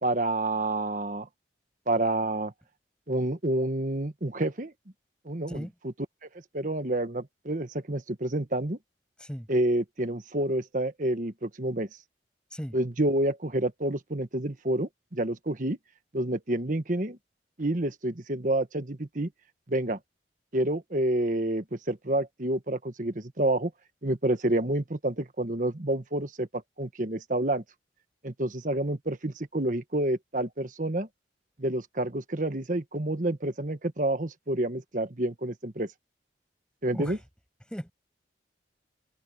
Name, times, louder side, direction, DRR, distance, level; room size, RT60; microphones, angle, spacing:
voice 1, 0.0-1.3 1.9-2.5 3.1-4.7 5.2-5.7 6.2-6.3 6.5-8.8 9.5-11.9 12.7-15.8 16.1-17.2 17.6-19.3 19.7-20.0 20.5-23.7 24.0-27.6 28.2-31.1 31.6-35.9 36.8-37.2, right 1 dB, 45° right, 1.4 m, -28 dB
voice 2, 5.5-5.7 9.2-9.5 12.5-12.7 36.9-37.2 37.7-37.9, equal, 5° left, 6.6 m, -36 dB
head